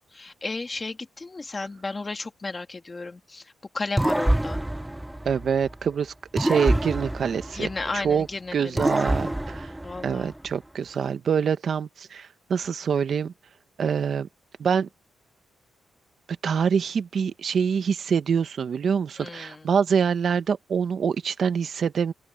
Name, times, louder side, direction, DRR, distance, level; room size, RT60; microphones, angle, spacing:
voice 1, 0.1-4.6 7.5-9.2 9.8-10.3 19.2-19.7, left 3 dB, 20° left, 2.3 m, -34 dB
sound 1, 4.0-5.9 6.4-8.2 8.8-10.5, right 1 dB, 5° right, 0.4 m, -27 dB
voice 2, 5.2-7.7 7.9-8.3 8.5-9.7 10.0-13.3 13.8-14.3 14.6-14.9 16.4-22.1, right 7 dB, 50° right, 1.1 m, -25 dB
open air
wide cardioid pair, 155°, 0 cm